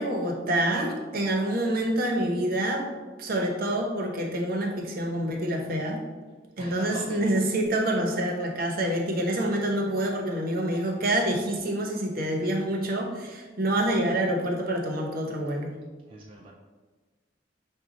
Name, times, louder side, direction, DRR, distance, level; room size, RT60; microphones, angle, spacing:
voice 1, 0.0-2.9 3.2-6.0 6.6-15.7, right 1 dB, 55° right, 1 dB, 0.7 m, -27 dB
voice 2, 6.6-7.4 16.1-16.5, right 1 dB, 30° right, -2 dB, 0.4 m, -42 dB
6.2 x 2.2 x 3.9 m, 1.4 s
head